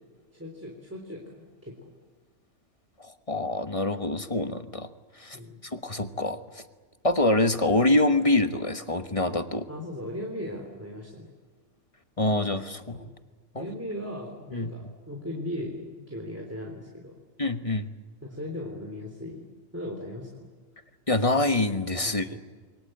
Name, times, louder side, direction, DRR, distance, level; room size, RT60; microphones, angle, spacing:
voice 1, 0.3-1.9 5.3-5.6 9.7-11.3 12.9-13.1 13.5-17.1 18.2-19.5 19.7-20.4 22.0-22.4, left 1 dB, 10° right, 1 dB, 3.4 m, -38 dB
voice 2, 3.0-4.9 5.2-5.4 5.6-6.6 7.0-9.7 12.2-13.0 13.5-13.7 14.5-14.7 17.4-17.9 21.1-22.4, left 2 dB, 25° left, 8 dB, 1.2 m, -25 dB
28.5 x 23.5 x 7.9 m, 1.5 s
omnidirectional pair, 1.4 m